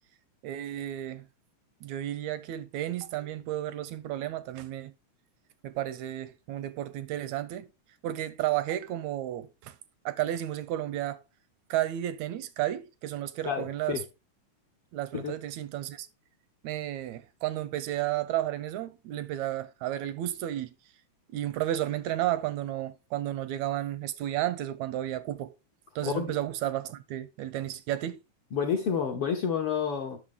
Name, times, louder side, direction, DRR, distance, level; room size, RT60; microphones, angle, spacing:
voice 1, 0.4-1.2 1.8-4.9 5.6-7.7 8.0-9.7 10.1-11.2 11.7-14.0 14.9-16.1 16.6-20.7 21.3-25.5 26.0-28.2, right 13 dB, 80° right, 1.7 m, -32 dB
voice 2, 13.4-14.0 15.1-15.3 26.0-26.4 28.5-30.2, left 7 dB, 70° left, 1.4 m, -29 dB
8.9 x 6.5 x 3.6 m
omnidirectional pair, 3.6 m